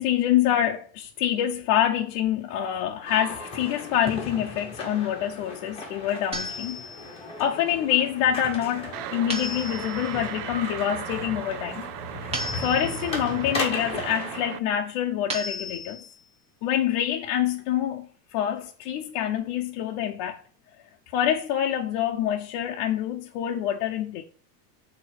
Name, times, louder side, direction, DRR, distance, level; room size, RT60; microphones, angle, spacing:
voice 1, 0.0-6.8 7.4-11.9 12.6-16.0 16.6-20.4 21.1-24.2, left 10 dB, 55° left, 0.7 m, -26 dB
sound 1, 3.0-14.4, left 2 dB, 10° left, 1.5 m, -36 dB
sound 2, 6.3-7.2 9.3-10.2 12.3-13.2 15.3-16.2, left 1 dB, 15° right, 0.8 m, -34 dB
sound 3, 8.9-14.6, right 14 dB, 85° right, 0.6 m, -37 dB
8.0 x 3.0 x 4.9 m
cardioid pair, 175°, 46 cm